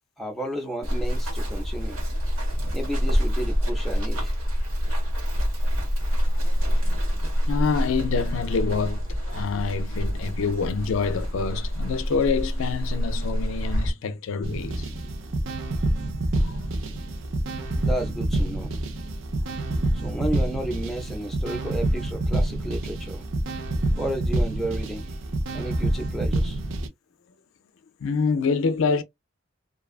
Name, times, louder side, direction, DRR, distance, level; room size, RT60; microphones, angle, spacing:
voice 1, 0.2-2.0 2.7-4.3 17.8-18.7 19.9-23.2 24.0-25.1 25.5-26.6, right 1 dB, ahead, 0.5 m, -32 dB
Run, 0.8-13.9, equal, 90° right, 1.2 m, -26 dB
voice 2, 6.2-7.2 7.5-14.9 16.4-16.6 19.3-19.5 28.0-29.0, left 5 dB, 70° left, 0.4 m, -27 dB
cubix beat, 14.4-26.9, right 1 dB, 70° right, 0.6 m, -27 dB
2.5 x 2.3 x 2.3 m
head